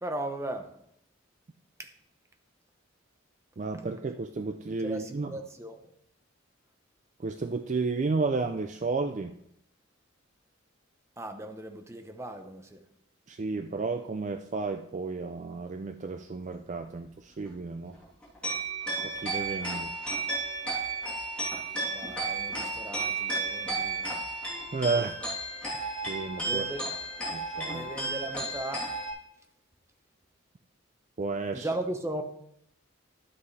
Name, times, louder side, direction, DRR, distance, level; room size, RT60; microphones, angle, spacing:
voice 1, 0.0-0.7 1.8-1.9 4.8-5.8 11.2-12.8 21.9-24.1 26.5-26.8 27.6-29.0 31.5-32.2, right 1 dB, 15° right, 6 dB, 0.7 m, -37 dB
voice 2, 3.6-5.4 7.2-9.3 13.3-18.0 19.0-19.9 24.7-25.2 26.1-26.6 27.3-27.9 31.2-31.7, right 4 dB, 35° right, 7 dB, 0.4 m, -32 dB
sound 1, 18.0-29.1, right 3 dB, 5° left, 3.0 m, -33 dB
12.5 x 8.2 x 3.3 m, 0.75 s
head